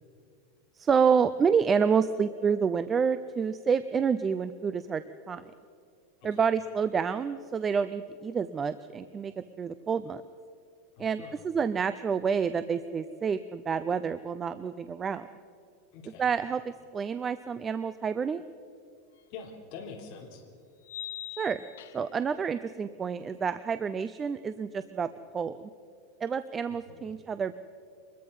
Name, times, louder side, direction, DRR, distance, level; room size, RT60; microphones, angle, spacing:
voice 1, 0.8-5.5 6.2-10.2 11.0-15.3 16.2-16.6 16.9-18.4 21.4-21.6 21.9-25.7 26.2-27.5, right 6 dB, 15° right, 13 dB, 0.4 m, -28 dB
voice 2, 11.0-11.3 15.9-16.3 19.3-20.4 26.7-27.1, left 5 dB, 40° left, -1 dB, 3.6 m, -45 dB
sound 1, 19.2-19.3 20.8-22.3, left 13 dB, 90° left, 1.0 m, -42 dB
25.0 x 21.0 x 5.5 m, 2.3 s
supercardioid pair, 175°, 0 cm